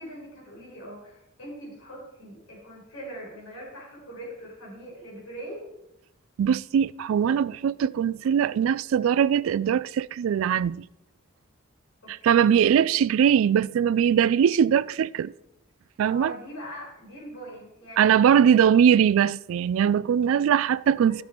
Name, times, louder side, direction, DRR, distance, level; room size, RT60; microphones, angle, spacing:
voice 1, 0.0-5.7 12.0-12.7 16.0-18.6 21.1-21.2, equal, 85° left, 4.6 m, -42 dB
voice 2, 6.4-10.9 12.1-15.3 16.0-16.3 18.0-21.2, right 8 dB, 80° right, 0.3 m, -21 dB
12.0 x 7.4 x 4.4 m
head